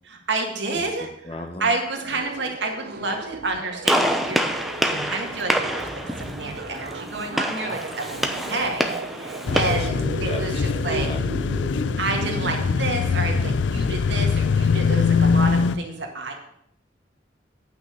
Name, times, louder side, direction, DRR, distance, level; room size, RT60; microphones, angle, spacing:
voice 1, 0.1-1.1 1.6-4.4 4.8-11.1 12.0-16.3, right 3 dB, 70° right, 2 dB, 2.0 m, -29 dB
voice 2, 1.2-1.7 8.5-8.8 9.5-12.0 14.9-15.3, left 1 dB, 30° left, 6 dB, 1.0 m, -36 dB
sound 1, 1.9-13.5, right 3 dB, 55° right, 0.6 m, -36 dB
Gunshot gunfire, 3.8-9.9, equal, ahead, 0.8 m, -26 dB
sound 2, 9.5-15.8, left 5 dB, 75° left, 0.4 m, -22 dB
9.1 x 5.8 x 8.0 m, 0.72 s
head